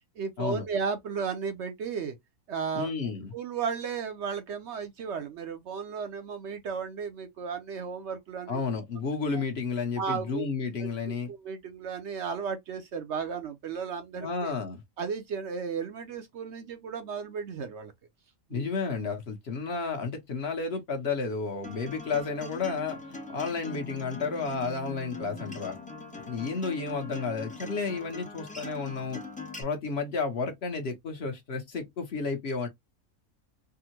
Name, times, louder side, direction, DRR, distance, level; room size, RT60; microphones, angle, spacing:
voice 1, 0.2-2.2 2.5-8.6 9.3-9.4 10.0-10.5 10.8-14.5 15.0-17.9 18.5-18.6, right 6 dB, 65° right, 0.8 m, -34 dB
voice 2, 2.7-3.3 8.5-11.3 14.2-14.8 18.5-25.8 26.3-29.2 29.6-32.7, left 4 dB, 55° left, 0.9 m, -32 dB
Acoustic guitar, 21.6-29.6, left 2 dB, 10° left, 0.3 m, -42 dB
3.5 x 2.0 x 2.8 m
omnidirectional pair, 1.5 m